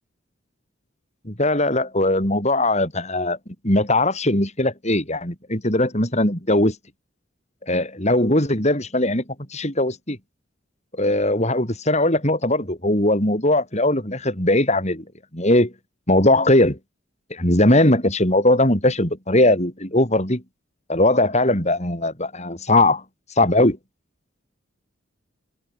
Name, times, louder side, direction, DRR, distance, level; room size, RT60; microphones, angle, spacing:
voice 1, 1.2-3.4 3.6-6.8 7.7-9.2 9.5-10.2 11.0-15.0 15.3-15.7 16.1-16.8 17.3-20.4 20.9-23.0 23.4-23.8, left 1 dB, 35° left, 6.6 m, -19 dB
head